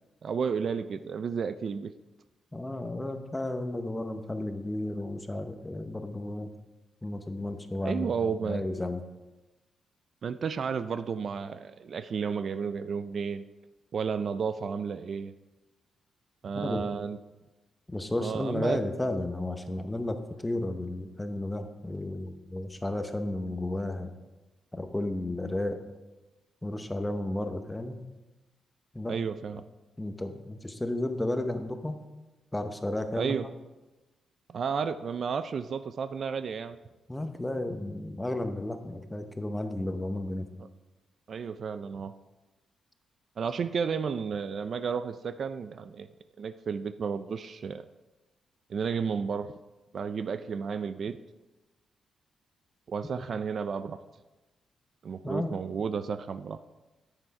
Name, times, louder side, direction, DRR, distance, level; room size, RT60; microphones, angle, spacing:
voice 1, 0.2-1.9 7.8-8.6 10.2-13.4 13.9-15.3 16.4-17.2 18.2-18.8 29.1-29.6 33.2-33.5 34.5-36.8 41.3-42.1 43.4-46.1 46.4-47.9 48.7-49.5 49.9-51.2 52.9-54.0 55.0-56.6, right 6 dB, 50° right, 12 dB, 0.4 m, -32 dB
voice 2, 2.5-6.5 7.0-8.1 8.4-9.0 16.5-16.8 17.9-24.1 24.7-25.8 26.6-28.0 28.9-29.2 30.0-32.0 32.5-33.4 37.1-40.5 53.2-53.3 55.2-55.6, left 1 dB, 10° left, 8 dB, 0.8 m, -33 dB
9.8 x 7.9 x 4.8 m, 1.1 s
cardioid pair, 125°, 0 cm